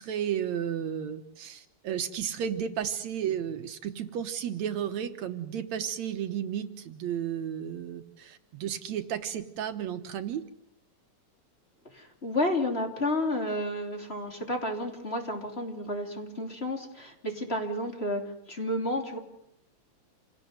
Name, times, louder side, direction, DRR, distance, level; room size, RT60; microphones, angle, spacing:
voice 1, 0.0-10.4, right 9 dB, 70° right, 9 dB, 2.3 m, -33 dB
voice 2, 11.9-18.2 18.5-19.2, left 1 dB, 20° left, 3 dB, 3.3 m, -31 dB
28.0 x 18.5 x 7.8 m, 0.79 s
omnidirectional pair, 3.4 m